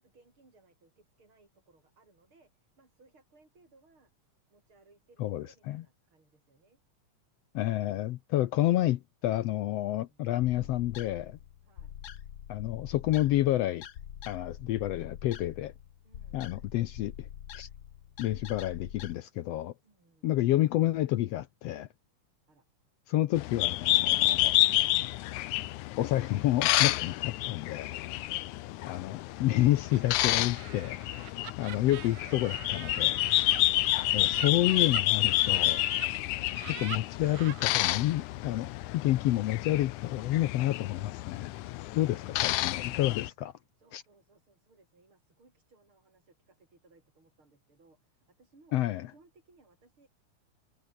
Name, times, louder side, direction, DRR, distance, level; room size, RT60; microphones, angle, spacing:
voice 1, 0.0-4.1 4.5-6.8 10.0-10.3 11.6-12.0 16.0-16.5 19.8-20.5 22.5-22.7 27.2-27.4 28.2-28.4 31.4-32.5 33.5-33.9 42.0-43.4 43.7-48.8 49.1-50.1, right 3 dB, 40° right, 7.7 m, -64 dB
voice 2, 5.2-5.8 7.5-11.4 12.5-13.8 14.3-15.7 16.3-17.3 17.5-17.7 18.2-19.7 20.2-21.9 23.1-24.5 26.0-28.0 28.8-31.0 31.6-33.2 34.1-35.9 36.8-41.5 41.9-43.5 43.9-44.0 48.7-49.1, left 14 dB, 75° left, 1.6 m, -29 dB
sound 1, 10.4-19.1, left 10 dB, 55° left, 1.5 m, -45 dB
sound 2, 23.4-43.3, left 17 dB, 90° left, 2.2 m, -29 dB
Laughter, 29.9-36.1 36.4-37.7, right 11 dB, 60° right, 2.1 m, -45 dB
omnidirectional pair, 3.5 m